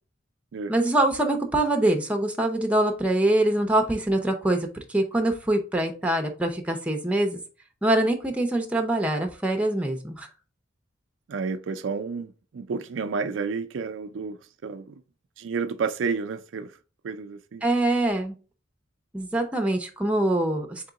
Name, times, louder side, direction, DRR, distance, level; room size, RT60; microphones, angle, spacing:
voice 1, 0.7-7.4 7.8-10.3 17.6-18.3 19.1-20.9, right 1 dB, 5° right, 0.7 m, -24 dB
voice 2, 11.3-15.0 15.4-16.7 17.0-17.6, right 5 dB, 75° right, 0.4 m, -31 dB
3.8 x 3.6 x 3.9 m
head